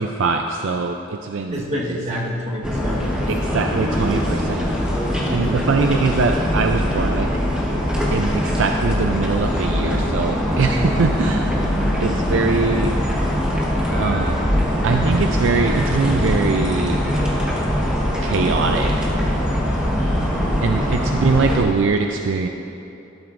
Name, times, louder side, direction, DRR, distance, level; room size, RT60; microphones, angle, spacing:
voice 1, 0.0-1.6 3.3-4.7 5.3-7.3 8.1-11.6 12.0-12.9 13.9-14.4 14.8-17.0 18.2-19.5 20.6-22.5, right 4 dB, 65° right, 4 dB, 0.4 m, -22 dB
voice 2, 1.5-3.3 3.9-4.1 4.4-4.6 19.9-20.6 20.9-21.1, equal, 35° right, -3 dB, 1.3 m, -30 dB
sound 1, 2.6-21.6, equal, 5° right, 1.2 m, -22 dB
12.5 x 12.0 x 2.5 m, 2.8 s
head